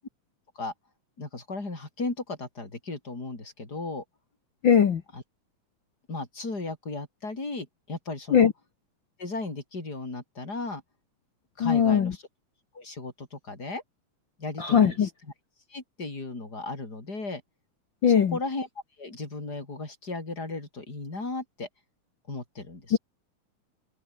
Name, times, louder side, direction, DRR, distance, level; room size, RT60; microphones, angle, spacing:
voice 1, 1.2-4.0 5.1-5.2 6.1-8.5 9.2-10.8 11.6-12.2 12.7-13.8 14.4-15.3 15.7-17.4 18.0-18.7 19.0-21.7 22.3-23.0, left 3 dB, 30° left, 6.2 m, -35 dB
voice 2, 4.6-5.0 8.3-8.5 11.6-12.1 14.6-15.1 18.0-18.4 22.9-23.0, left 7 dB, 50° left, 1.6 m, -20 dB
omnidirectional pair, 3.6 m